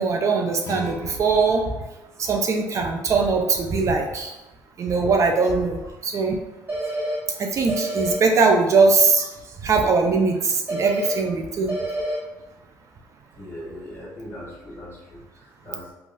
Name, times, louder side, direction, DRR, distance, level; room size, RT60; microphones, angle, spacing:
voice 1, 0.0-1.6 2.2-4.3 4.8-6.4 7.4-9.3 9.6-11.7, right 4 dB, 45° right, 3 dB, 0.4 m, -21 dB
Guitar, 0.6-3.4, left 1 dB, 50° left, 0.9 m, -41 dB
sound 1, 6.7-7.2 7.7-8.2 10.7-11.2 11.7-12.2, right 1 dB, 30° right, 1.0 m, -27 dB
voice 2, 13.4-15.9, equal, 30° left, -5 dB, 1.5 m, -39 dB
3.1 x 2.3 x 2.5 m, 1.0 s
supercardioid pair, 85°, 7 cm